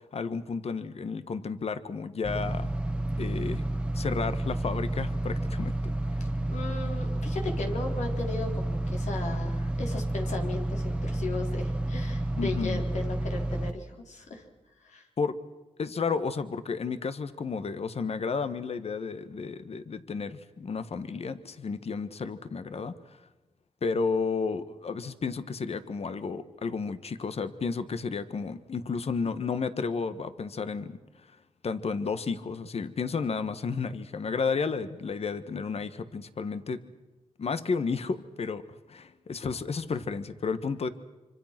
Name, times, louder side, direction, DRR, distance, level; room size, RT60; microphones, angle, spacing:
voice 1, 0.0-2.7 3.2-3.6 4.0-5.7 12.4-12.8 15.2-15.4 15.8-22.9 23.8-31.0 31.6-36.8 37.4-38.6 38.9-40.9, left 5 dB, 60° left, 12 dB, 1.6 m, -32 dB
sound 1, 2.2-13.7, right 1 dB, 10° right, 1.4 m, -30 dB
voice 2, 6.2-14.4 14.8-15.1, left 3 dB, 80° left, 2 dB, 4.5 m, -37 dB
26.5 x 25.0 x 6.1 m, 1.1 s
cardioid pair, 85°, 12 cm